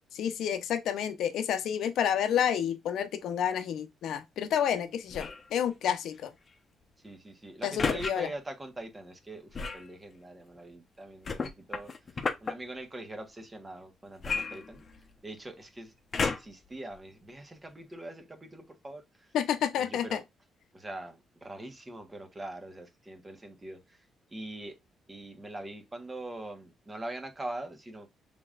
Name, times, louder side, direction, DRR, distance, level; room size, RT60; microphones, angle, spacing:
voice 1, 0.1-6.3 7.6-8.3 19.3-20.2, left 9 dB, 75° left, 0.7 m, -30 dB
sound 1, 5.1-5.5 7.8-8.1 9.5-9.9 11.2-12.5 14.2-15.2 16.1-16.7 17.3-17.4, left 4 dB, 40° left, 0.8 m, -32 dB
voice 2, 7.0-11.9 12.4-14.8 15.2-19.0 19.8-20.2 20.7-23.8 24.3-24.7 25.1-28.1, right 1 dB, 20° right, 1.2 m, -43 dB
5.9 x 3.6 x 2.4 m
cardioid pair, 90°, 0 cm